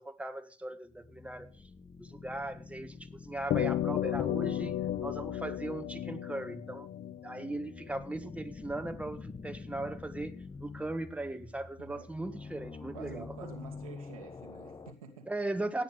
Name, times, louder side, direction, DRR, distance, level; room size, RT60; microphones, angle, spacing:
voice 1, 0.0-1.7 2.0-6.9 7.2-13.2 15.3-15.8, right 2 dB, 5° right, 1.6 m, -38 dB
sound 1, 0.9-14.9, left 4 dB, 25° left, 1.1 m, -47 dB
sound 2, 3.5-8.1, left 12 dB, 55° left, 1.0 m, -34 dB
voice 2, 11.8-12.1 12.9-15.3, right 6 dB, 85° right, 2.0 m, -48 dB
17.0 x 9.4 x 4.9 m
figure-of-eight pair, 45°, 18 cm